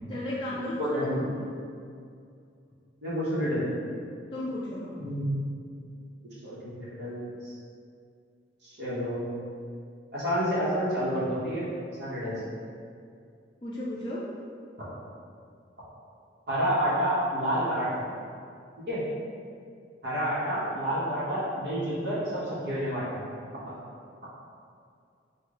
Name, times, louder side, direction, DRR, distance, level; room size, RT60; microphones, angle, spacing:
voice 1, 0.1-1.1 4.3-5.0 13.6-14.2, left 1 dB, 25° left, -8 dB, 0.5 m, -34 dB
voice 2, 0.8-1.3 3.0-3.6 5.0-5.4 6.4-7.5 8.6-9.3 10.1-11.6 12.0-12.4 16.5-18.1 18.9-19.0 20.0-23.2, equal, 65° right, -9 dB, 1.2 m, -29 dB
4.9 x 2.5 x 3.8 m, 2.3 s
head